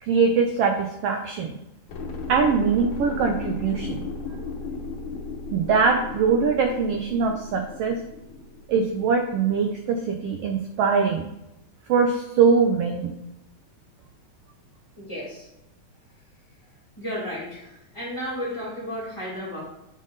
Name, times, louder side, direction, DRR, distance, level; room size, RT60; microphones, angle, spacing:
voice 1, 0.0-1.5 2.3-4.0 5.5-8.0 8.7-11.3 11.9-13.1, right 5 dB, 85° right, 4 dB, 1.3 m, -22 dB
sound 1, 1.9-9.7 10.0-10.1, left 4 dB, 70° left, 1.2 m, -35 dB
voice 2, 15.0-15.5 17.0-19.6, equal, 10° left, -7 dB, 1.9 m, -33 dB
7.4 x 3.7 x 3.9 m, 0.89 s
omnidirectional pair, 3.4 m